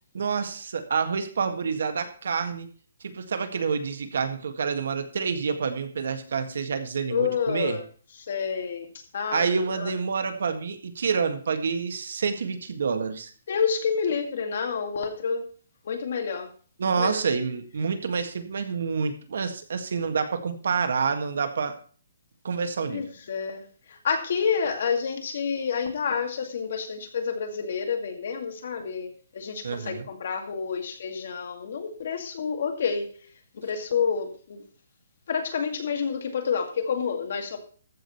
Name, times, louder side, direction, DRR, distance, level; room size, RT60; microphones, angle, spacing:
voice 1, 0.1-2.7 3.0-7.8 9.3-13.3 16.8-21.8 22.4-23.0 29.6-30.1, right 5 dB, 60° right, 8 dB, 1.8 m, -28 dB
voice 2, 7.1-7.8 8.2-9.5 9.7-9.9 13.5-15.5 15.8-16.5 16.8-17.2 22.9-33.1 33.5-34.6 35.3-37.6, left 6 dB, 45° left, 5 dB, 2.2 m, -29 dB
14.5 x 5.1 x 7.0 m, 0.43 s
hypercardioid pair, 175°, 0 cm